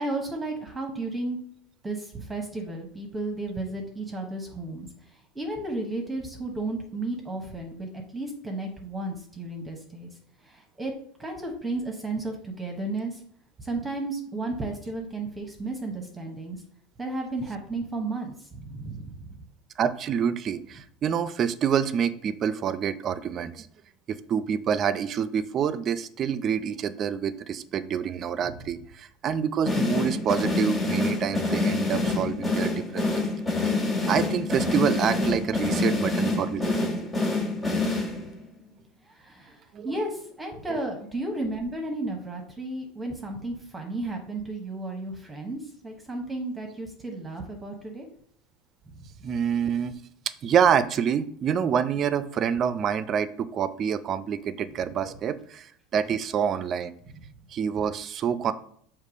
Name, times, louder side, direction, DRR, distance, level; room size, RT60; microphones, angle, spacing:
voice 1, 0.0-1.4 1.8-10.1 10.4-10.9 11.2-13.2 13.6-16.6 17.0-19.3 37.9-38.1 39.0-48.1 48.9-49.0, right 2 dB, 10° right, 2 dB, 0.9 m, -33 dB
voice 2, 19.8-23.7 24.1-33.2 34.1-37.0 39.7-39.9 49.2-50.0 50.4-56.9 57.5-58.5, right 8 dB, 35° right, 15 dB, 0.4 m, -27 dB
sound 1, 29.7-38.5, left 2 dB, 15° left, 1.6 m, -26 dB
6.5 x 3.0 x 5.0 m, 0.64 s
supercardioid pair, 135°, 0 cm